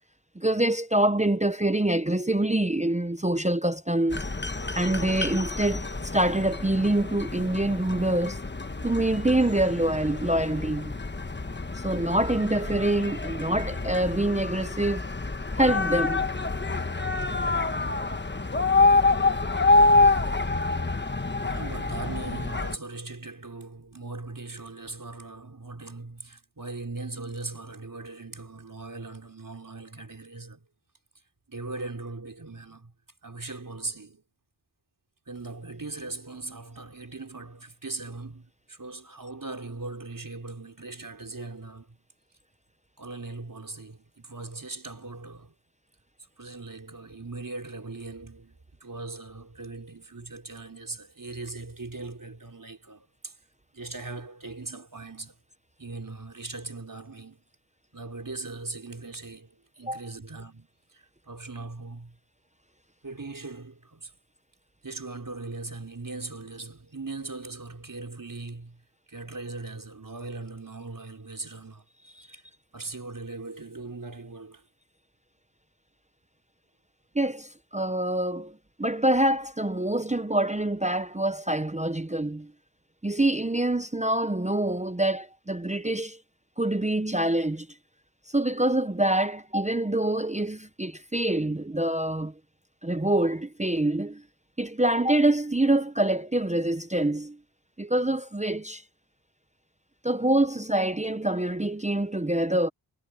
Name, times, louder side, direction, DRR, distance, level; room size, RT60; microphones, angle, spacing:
voice 1, 0.4-4.2 4.7-8.4 8.8-11.0 11.8-15.0 15.5-16.2 59.9-60.0 77.1-82.5 83.0-86.2 86.6-87.7 88.3-92.3 92.8-94.2 94.6-97.4 97.8-98.8 100.0-102.7, right 1 dB, 15° right, 0.8 m, -25 dB
sound 1, 4.1-22.8, left 3 dB, 25° left, 1.1 m, -27 dB
voice 2, 21.4-30.7 31.5-32.9 33.2-34.2 35.3-42.0 43.0-45.5 46.4-53.4 53.7-55.4 55.8-57.4 57.9-62.2 63.0-64.1 64.8-68.8 69.1-71.8 72.2-72.4 72.7-74.6, right 3 dB, 40° right, 4.8 m, -39 dB
wide cardioid pair, 85°, 47 cm